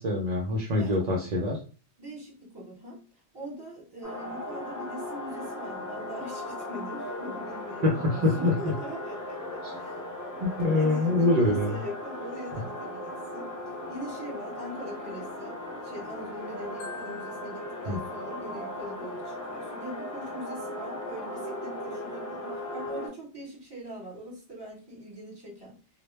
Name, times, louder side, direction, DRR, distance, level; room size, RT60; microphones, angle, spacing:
voice 1, 0.0-1.6 7.8-8.8 10.4-11.8 17.9-18.0, left 2 dB, 50° right, -1 dB, 0.5 m, -25 dB
voice 2, 0.8-1.1 2.0-3.0 3.3-10.0 10.7-25.8, equal, 20° right, -4 dB, 1.1 m, -42 dB
sound 1, 4.0-23.1, left 1 dB, 30° left, 0.4 m, -37 dB
Marimba xylophone, 16.8-18.9, left 4 dB, 70° left, 1.0 m, -47 dB
2.1 x 2.1 x 3.2 m, 0.36 s
omnidirectional pair, 1.2 m